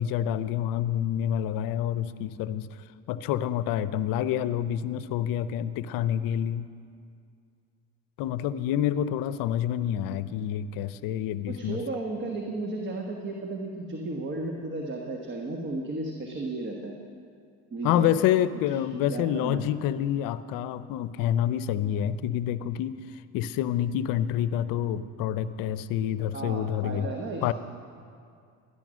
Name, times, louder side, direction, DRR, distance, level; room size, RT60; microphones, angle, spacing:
voice 1, 0.0-2.7 3.1-6.7 8.2-11.8 17.8-23.0 23.3-27.1 27.4-27.5, left 10 dB, 70° left, 14 dB, 0.6 m, -27 dB
voice 2, 11.5-16.9 17.7-18.2 19.1-19.6 26.3-27.5, right 2 dB, 35° right, 1 dB, 1.3 m, -34 dB
13.0 x 10.5 x 6.2 m, 2.3 s
supercardioid pair, 100°, 35 cm